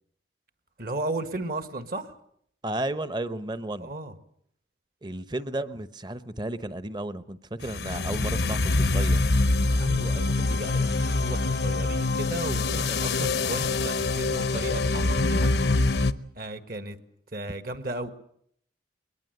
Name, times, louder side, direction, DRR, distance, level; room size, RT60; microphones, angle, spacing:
voice 1, 0.8-2.2 3.8-4.1 9.6-15.5 16.4-17.0 17.3-18.1, right 2 dB, 50° right, 10 dB, 1.7 m, -35 dB
voice 2, 2.6-3.9 5.0-9.2, right 1 dB, 25° right, 13 dB, 1.0 m, -33 dB
sound 1, 7.6-16.1, left 3 dB, 70° left, 0.9 m, -25 dB
22.5 x 20.5 x 8.0 m, 0.67 s
head